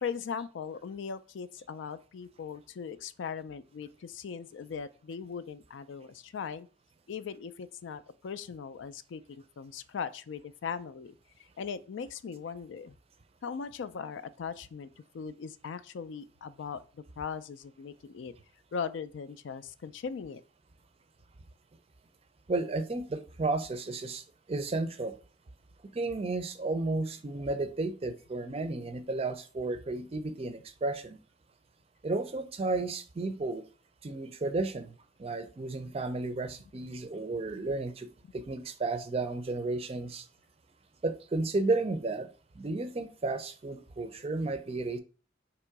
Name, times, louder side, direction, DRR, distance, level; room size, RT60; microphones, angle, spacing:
voice 1, 0.0-6.7 7.1-11.1 11.6-13.0 13.4-14.9 15.1-18.3 18.7-20.4, left 6 dB, 80° left, 0.4 m, -39 dB
voice 2, 22.5-25.1 25.9-31.2 32.0-33.6 34.0-34.9 35.2-38.1 38.3-40.3 41.0-42.3 42.5-45.0, right 3 dB, 30° right, 0.4 m, -33 dB
3.6 x 3.0 x 4.5 m
head